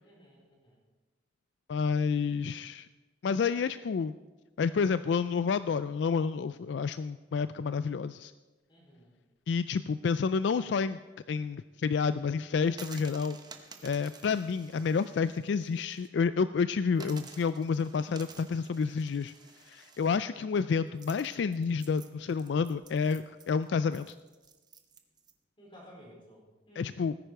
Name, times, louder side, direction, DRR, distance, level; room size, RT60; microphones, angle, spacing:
voice 1, 0.0-0.8 8.7-9.1 25.6-27.1, equal, 25° left, -3 dB, 4.5 m, -55 dB
voice 2, 1.7-2.9 3.2-4.1 4.6-8.3 9.5-11.0 11.3-13.4 13.8-19.3 19.7-24.1 26.8-27.1, left 5 dB, 70° left, 14 dB, 0.3 m, -29 dB
sound 1, 12.7-16.1 16.4-16.5 16.9-25.3, right 5 dB, 20° right, 0.9 m, -52 dB
18.0 x 10.0 x 4.6 m, 1.2 s
head